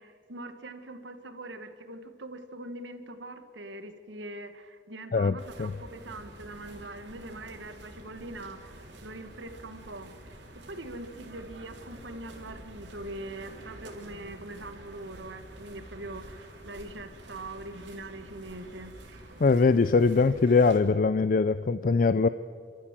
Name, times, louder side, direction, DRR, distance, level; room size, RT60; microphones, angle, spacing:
voice 1, 0.0-10.4 10.7-18.9, right 2 dB, 90° right, 8 dB, 1.7 m, -42 dB
voice 2, 5.1-5.7 19.4-22.3, left 4 dB, 50° left, 14 dB, 0.4 m, -22 dB
sound 1, 5.4-20.8, right 1 dB, 75° right, 3.8 m, -48 dB
29.5 x 13.0 x 7.5 m, 2.4 s
head